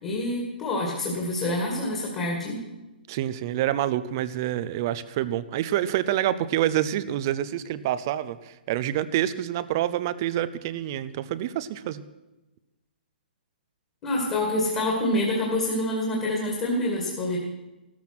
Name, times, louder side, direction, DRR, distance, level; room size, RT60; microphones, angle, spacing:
voice 1, 0.0-2.6 14.0-17.4, left 1 dB, 15° left, -2 dB, 2.2 m, -27 dB
voice 2, 3.1-12.0, right 12 dB, 20° right, 15 dB, 0.4 m, -27 dB
15.5 x 13.0 x 6.0 m, 1.0 s
hypercardioid pair, 180°, 6 cm